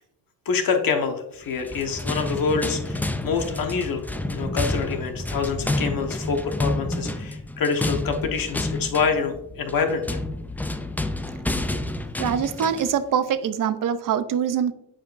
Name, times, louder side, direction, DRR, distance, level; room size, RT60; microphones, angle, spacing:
voice 1, 0.4-10.1, left 5 dB, 45° left, 4 dB, 1.3 m, -26 dB
sound 1, 1.5-12.9, left 2 dB, 5° left, 0.3 m, -29 dB
voice 2, 12.2-14.7, right 8 dB, 45° right, 12 dB, 0.7 m, -24 dB
8.7 x 5.0 x 2.6 m, 0.80 s
supercardioid pair, 80°, 46 cm